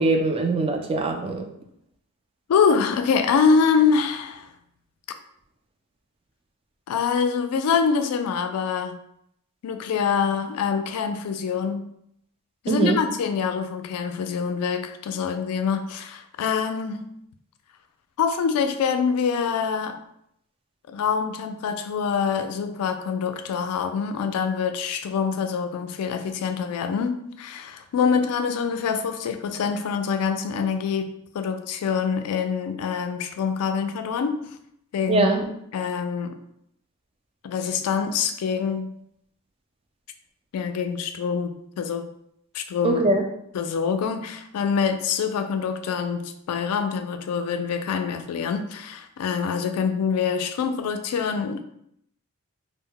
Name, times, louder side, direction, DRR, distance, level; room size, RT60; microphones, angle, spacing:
voice 1, 0.0-1.4 12.7-13.0 35.1-35.4 42.8-43.2, right 2 dB, 25° right, 4 dB, 0.3 m, -22 dB
voice 2, 2.5-4.5 6.9-9.0 9.6-11.8 12.6-17.0 18.2-20.0 20.9-34.4 34.9-35.3 35.7-36.4 37.4-38.9 40.5-42.1 42.5-43.0 43.5-51.6, left 6 dB, 70° left, 7 dB, 0.3 m, -25 dB
2.1 x 2.1 x 3.6 m, 0.73 s
head